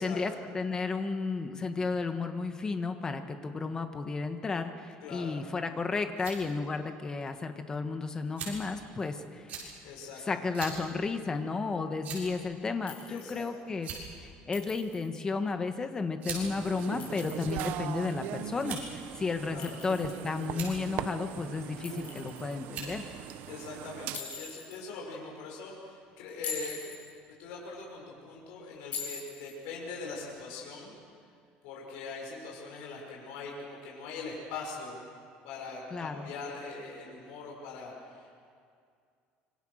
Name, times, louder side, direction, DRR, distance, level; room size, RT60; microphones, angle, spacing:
voice 1, 0.0-9.4 10.3-13.9 14.5-23.1 35.9-36.3, left 4 dB, 20° left, 7 dB, 1.6 m, -33 dB
voice 2, 5.0-5.4 9.8-10.5 13.1-13.7 19.5-19.8 23.5-26.8 27.4-30.9 31.6-35.0 35.4-38.3, left 4 dB, 90° left, -2 dB, 6.0 m, -42 dB
sound 1, 6.2-6.4 7.2-7.3 8.4-8.7 9.5-9.7 10.5-10.8 11.2-11.3 12.0-12.4 13.3-13.4 13.7-14.2 15.3-15.5 16.2-16.5 17.3-17.9 18.6-19.0 19.8-20.1 20.4-20.7 21.9-22.2 22.7-23.0, right 6 dB, 45° right, 7.3 m, -40 dB
Chink clink, 12.9-13.5 14.5-15.2 16.8-17.7 19.6-20.5 21.8-22.6 24.1-24.8 26.3-27.1 28.9-29.6, left 6 dB, 45° left, 6.2 m, -42 dB
sound 2, 16.4-24.2, right 12 dB, 65° right, 1.0 m, -40 dB
26.0 x 25.0 x 6.6 m, 2.3 s
cardioid pair, 150°, 3 cm